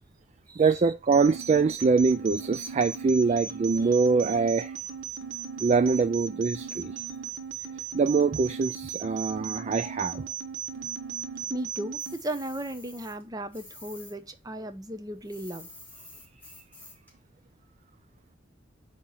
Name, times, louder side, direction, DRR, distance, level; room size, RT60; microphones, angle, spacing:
voice 1, 0.6-4.8 5.6-7.0 7.9-10.3, right 4 dB, 35° right, 0.3 m, -24 dB
sound 1, 1.1-12.1, right 6 dB, 80° right, 1.3 m, -37 dB
voice 2, 11.5-15.7, right 1 dB, 20° right, 0.7 m, -36 dB
sound 2, 12.0-14.1 14.4-17.1, left 2 dB, 10° left, 3.0 m, -49 dB
8.8 x 3.0 x 5.5 m
head